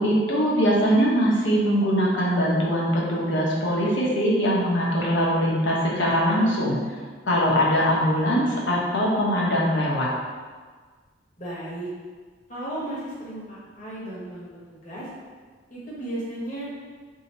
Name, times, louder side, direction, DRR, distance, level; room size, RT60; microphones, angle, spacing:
voice 1, 0.0-6.8 7.3-10.1, equal, 80° left, -4 dB, 0.8 m, -22 dB
voice 2, 11.4-11.9 12.5-15.1 15.7-16.6, right 1 dB, 40° left, -7 dB, 1.1 m, -35 dB
2.7 x 2.7 x 4.1 m, 1.5 s
head